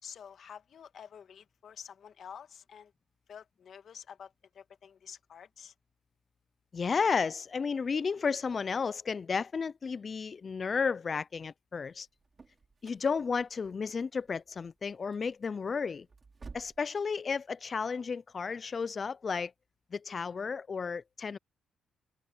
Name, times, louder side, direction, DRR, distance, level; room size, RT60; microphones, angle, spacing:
voice 1, 0.0-2.9 3.3-5.7, left 7 dB, 55° left, 1.6 m, -49 dB
voice 2, 6.7-12.1 12.8-16.1 16.5-19.5 19.9-21.4, left 5 dB, 40° left, 0.3 m, -33 dB
sound 1, 11.9-16.9, right 4 dB, 30° right, 4.1 m, -54 dB
cardioid pair, 90°, 0 cm